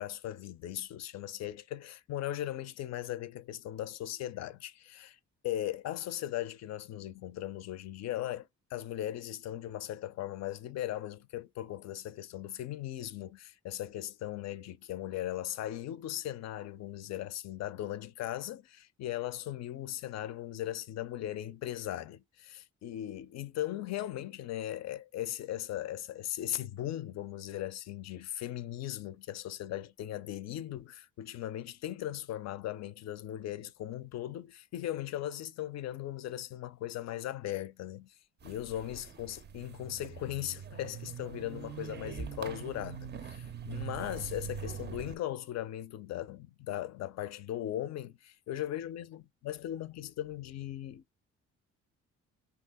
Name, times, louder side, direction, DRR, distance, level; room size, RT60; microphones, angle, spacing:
voice 1, 0.0-5.2 5.4-38.2 38.4-51.0, left 13 dB, 60° left, 0.5 m, -38 dB
sound 1, 38.4-45.2, right 7 dB, 35° right, 0.4 m, -43 dB
2.7 x 2.4 x 3.4 m
cardioid pair, 90°, 30 cm